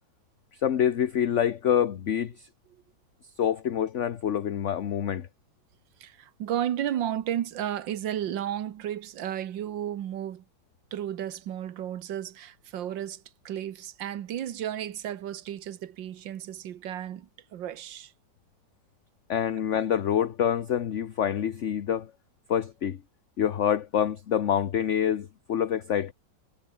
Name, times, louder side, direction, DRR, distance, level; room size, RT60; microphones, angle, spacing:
voice 1, 0.6-2.5 3.4-5.3 19.3-22.1 22.5-23.0 23.4-26.1, left 9 dB, 50° left, 1.1 m, -26 dB
voice 2, 6.0-10.4 10.9-18.1, right 11 dB, 90° right, 1.8 m, -33 dB
omnidirectional pair, 2.0 m